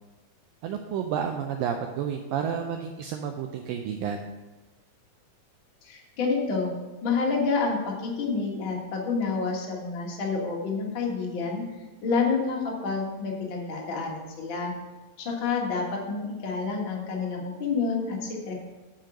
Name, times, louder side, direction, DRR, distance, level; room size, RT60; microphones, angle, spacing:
voice 1, 0.6-4.2, right 8 dB, 80° right, 4 dB, 2.0 m, -30 dB
voice 2, 5.8-6.7 7.0-11.6 12.0-14.7 15.2-18.5, left 4 dB, 60° left, -1 dB, 1.2 m, -28 dB
9.1 x 4.8 x 6.0 m, 1.2 s
omnidirectional pair, 4.5 m